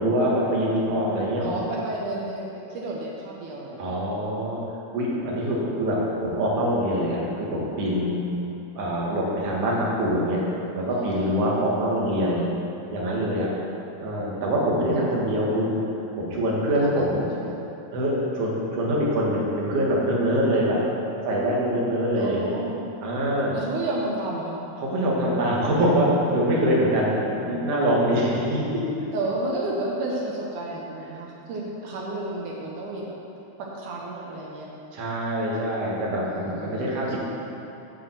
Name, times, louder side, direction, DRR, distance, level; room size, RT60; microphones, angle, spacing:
voice 1, 0.0-1.5 3.8-4.6 4.9-8.2 8.7-12.4 12.9-13.5 14.0-15.7 16.2-17.3 17.9-20.8 21.2-22.5 23.0-23.6 24.8-28.8 34.9-37.2, equal, 55° right, -4 dB, 1.9 m, -24 dB
voice 2, 1.4-3.9 7.7-8.0 10.9-11.4 16.6-17.5 20.3-20.6 22.2-22.8 23.5-24.6 29.1-33.1 33.8-34.7 36.3-37.2, right 2 dB, 70° right, -3 dB, 2.0 m, -32 dB
9.0 x 4.9 x 7.5 m, 2.8 s
omnidirectional pair, 4.5 m